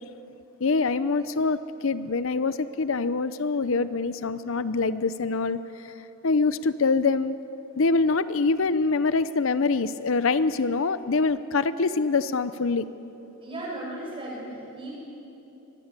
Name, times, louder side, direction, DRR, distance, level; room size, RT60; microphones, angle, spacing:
voice 1, 0.6-5.9 6.2-7.4 7.8-12.9, left 4 dB, 65° left, 14 dB, 0.6 m, -25 dB
voice 2, 13.4-14.9, right 1 dB, 25° right, -3 dB, 7.2 m, -36 dB
24.0 x 21.0 x 8.2 m, 2.9 s
head